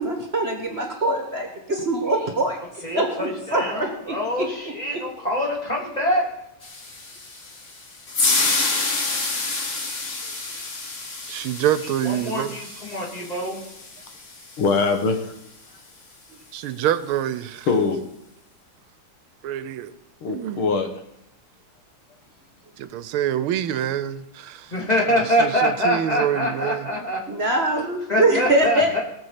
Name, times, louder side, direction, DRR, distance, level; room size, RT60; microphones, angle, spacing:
voice 1, 0.0-2.6 2.9-4.5 4.9-5.0 27.3-28.9, right 1 dB, 30° right, 1.6 m, -23 dB
voice 2, 2.8-6.3 12.0-13.6 24.7-27.2 28.1-29.0, equal, 20° left, 2.8 m, -24 dB
sound 1, 6.6-14.9, left 3 dB, 40° left, 1.7 m, -28 dB
voice 3, 11.3-12.5 16.5-17.7 19.4-19.9 20.3-20.6 22.8-24.7 25.4-26.8, right 11 dB, 80° right, 1.5 m, -26 dB
voice 4, 14.6-15.3 17.7-18.0 20.2-20.9, left 4 dB, 75° left, 2.2 m, -22 dB
19.0 x 7.0 x 5.8 m
omnidirectional pair, 2.4 m